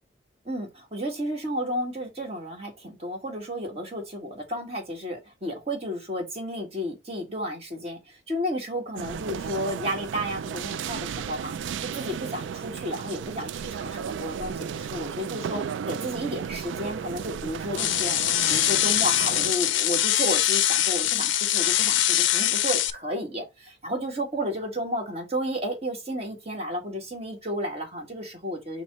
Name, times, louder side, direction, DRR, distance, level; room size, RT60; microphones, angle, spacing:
voice 1, 0.4-28.8, equal, 35° right, 1.6 m, -32 dB
sound 1, 9.0-19.5, right 7 dB, 80° right, 0.3 m, -34 dB
sound 2, 17.8-22.9, left 12 dB, 80° left, 0.4 m, -23 dB
6.0 x 2.2 x 4.1 m
head